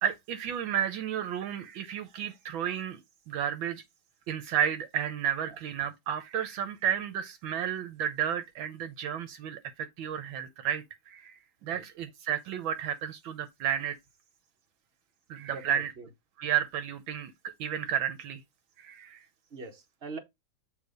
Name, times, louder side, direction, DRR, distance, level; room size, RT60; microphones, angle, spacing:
voice 1, 0.0-3.0 3.3-3.8 4.3-14.0 15.3-15.9 16.4-18.4 18.8-19.2, right 9 dB, 75° right, 1.4 m, -32 dB
voice 2, 15.5-16.1 19.5-20.2, right 4 dB, 35° right, 1.2 m, -43 dB
7.4 x 3.4 x 4.9 m
omnidirectional pair, 2.2 m